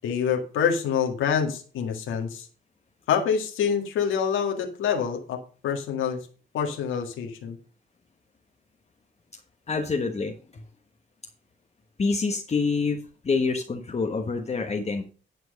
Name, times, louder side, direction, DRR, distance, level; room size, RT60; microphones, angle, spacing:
voice 1, 0.0-2.5 3.1-6.2 6.5-7.6, left 7 dB, 80° left, 3 dB, 1.9 m, -26 dB
voice 2, 9.7-10.3 12.0-13.0 13.2-15.0, left 4 dB, 35° left, 3 dB, 1.3 m, -26 dB
11.0 x 4.6 x 6.5 m, 0.40 s
cardioid pair, 90°, 20 cm